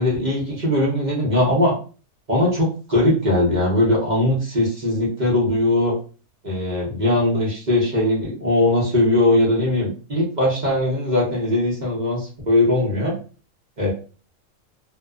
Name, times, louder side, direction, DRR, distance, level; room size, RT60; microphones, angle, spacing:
voice 1, 0.0-1.8 2.3-6.0 6.4-13.2 13.8-13.9, left 1 dB, 40° right, -5 dB, 0.9 m, -20 dB
2.6 x 2.3 x 2.3 m, 0.37 s
omnidirectional pair, 1.5 m